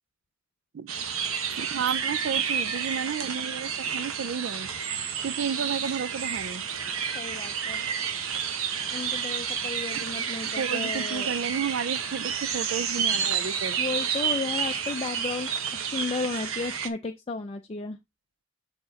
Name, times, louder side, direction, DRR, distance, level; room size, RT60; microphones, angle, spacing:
sound 1, 0.9-16.9, right 7 dB, 85° right, 1.0 m, -30 dB
voice 1, 1.6-4.7 5.2-6.6 10.0-10.1 10.5-13.8, right 6 dB, 60° right, 0.4 m, -32 dB
voice 2, 7.1-7.8 8.9-11.3 13.8-15.5 15.8-18.0, left 3 dB, 30° left, 0.4 m, -33 dB
6.8 x 4.3 x 3.9 m
head